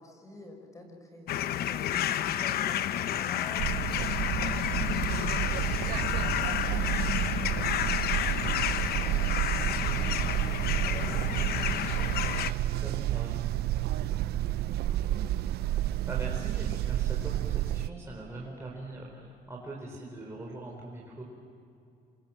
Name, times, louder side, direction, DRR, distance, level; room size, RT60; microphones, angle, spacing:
voice 1, 0.0-1.9 2.2-5.4 8.5-10.4 10.8-13.1 13.8-14.6 14.9-15.5, left 1 dB, 20° left, 4 dB, 5.4 m, -50 dB
sound 1, 1.3-12.5, left 11 dB, 65° left, 0.9 m, -30 dB
sound 2, 3.6-17.9, right 13 dB, 70° right, 0.6 m, -30 dB
voice 2, 12.8-13.4 16.1-21.2, right 2 dB, 15° right, -3 dB, 4.7 m, -42 dB
28.0 x 26.0 x 7.6 m, 2.5 s
cardioid pair, 110°, 17 cm